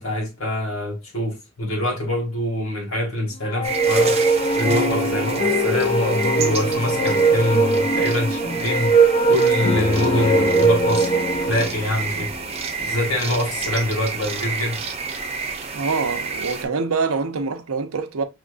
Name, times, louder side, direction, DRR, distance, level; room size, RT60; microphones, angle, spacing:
voice 1, 0.0-4.2 4.5-9.0 9.3-11.1 11.4-12.3 12.8-14.8, left 1 dB, 75° left, 2.2 m, -25 dB
sound 1, 3.5-11.7, right 4 dB, 25° left, 0.6 m, -21 dB
sound 2, 3.6-16.6, right 5 dB, 30° right, 0.7 m, -29 dB
sound 3, 4.6-12.7 13.3-13.4 13.7-14.0, left 4 dB, 55° left, 2.2 m, -28 dB
voice 2, 15.7-18.2, right 4 dB, 90° right, 0.7 m, -25 dB
6.1 x 3.1 x 2.4 m
head